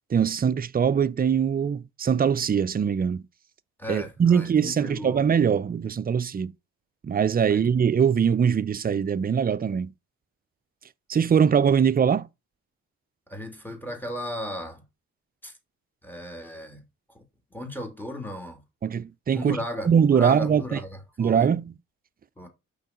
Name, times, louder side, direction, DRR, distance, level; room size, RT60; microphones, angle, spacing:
voice 1, 0.1-3.2 3.9-6.5 7.0-9.9 11.1-12.3 18.8-19.6 19.8-20.8 21.2-21.8, right 7 dB, 25° right, 0.5 m, -22 dB
voice 2, 3.8-5.2 7.5-7.6 13.3-14.8 15.4-15.5 16.0-16.8 17.1-17.2 17.5-18.6 19.3-20.9 21.2-21.5 22.4-22.5, left 1 dB, 5° left, 2.4 m, -35 dB
5.6 x 3.9 x 5.0 m
hypercardioid pair, 40°, 40 cm